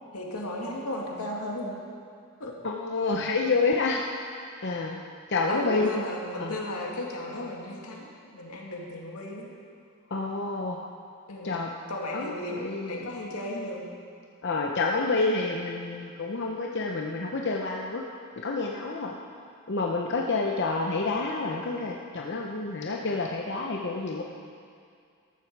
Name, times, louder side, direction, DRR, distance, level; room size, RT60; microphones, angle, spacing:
voice 1, 0.1-1.8 2.4-2.5 5.5-9.5 11.3-12.6 12.9-13.8, left 1 dB, 85° left, -2 dB, 2.2 m, -35 dB
voice 2, 2.6-4.0 4.6-5.0 5.3-6.1 6.4-6.5 10.1-10.8 11.4-11.7 12.1-13.1 14.4-18.0 18.4-19.2 19.7-24.2, left 3 dB, 55° left, 0 dB, 0.8 m, -28 dB
13.0 x 13.0 x 4.7 m, 2.3 s
head